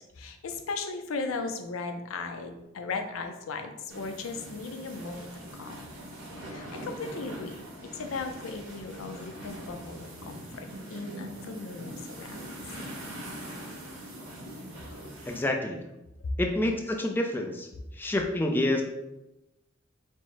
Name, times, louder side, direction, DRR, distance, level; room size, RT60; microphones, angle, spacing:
voice 1, 0.2-5.7 6.5-7.6 7.9-12.4 14.8-15.0, left 4 dB, 85° left, 6 dB, 0.5 m, -37 dB
sound 1, 3.9-15.4, right 1 dB, 90° right, 1.4 m, -42 dB
voice 2, 15.3-15.8 16.4-17.7 18.0-18.8, left 1 dB, 10° left, 2 dB, 0.3 m, -28 dB
4.4 x 2.0 x 4.5 m, 0.95 s
head